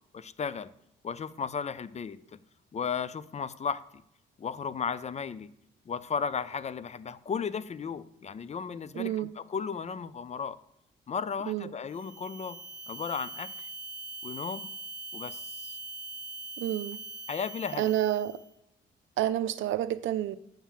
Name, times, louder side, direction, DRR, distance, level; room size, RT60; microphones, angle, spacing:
voice 1, 0.1-0.7 1.0-2.4 2.7-4.0 4.4-5.5 5.9-10.6 11.1-12.6 12.9-13.7 14.2-14.7 15.1-15.8 17.3-17.9, left 6 dB, 35° left, 16 dB, 0.6 m, -35 dB
voice 2, 8.9-9.3 11.5-11.7 16.6-17.0 17.8-18.4 19.2-20.4, right 12 dB, 75° right, 14 dB, 0.6 m, -29 dB
sound 1, 11.9-18.5, right 3 dB, 45° right, 1.3 m, -42 dB
7.2 x 5.6 x 7.4 m, 0.78 s
cardioid pair, 90°, 20 cm